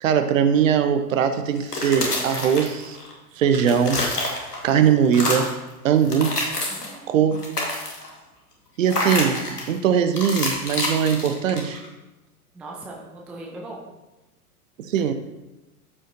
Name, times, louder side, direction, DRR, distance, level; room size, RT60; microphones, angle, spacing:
voice 1, 0.0-3.0 3.4-4.0 4.6-5.6 5.8-6.4 7.1-7.6 8.8-11.8 14.9-15.1, right 8 dB, 55° right, 9 dB, 0.9 m, -21 dB
sound 1, 1.6-3.1 3.4-4.7 5.0-5.6 6.0-7.0 7.3-8.1 8.9-9.7 10.2-11.9, left 2 dB, 80° left, 1.8 m, -27 dB
voice 2, 6.7-7.1 12.5-13.8, right 2 dB, 5° right, -2 dB, 0.4 m, -39 dB
13.5 x 5.1 x 2.6 m, 1.0 s
figure-of-eight pair, 95°, 46 cm